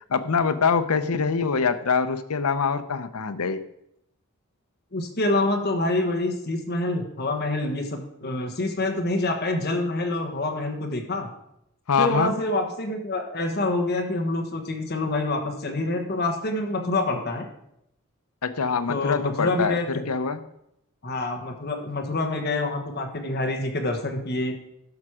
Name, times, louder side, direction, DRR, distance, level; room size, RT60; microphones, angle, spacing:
voice 1, 0.1-3.6 11.9-12.4 18.4-20.4, left 5 dB, 85° left, 11 dB, 0.7 m, -24 dB
voice 2, 4.9-11.3 12.0-17.5 18.9-20.0 21.0-24.6, left 2 dB, 45° left, 3 dB, 1.3 m, -26 dB
12.0 x 6.1 x 4.9 m, 0.79 s
head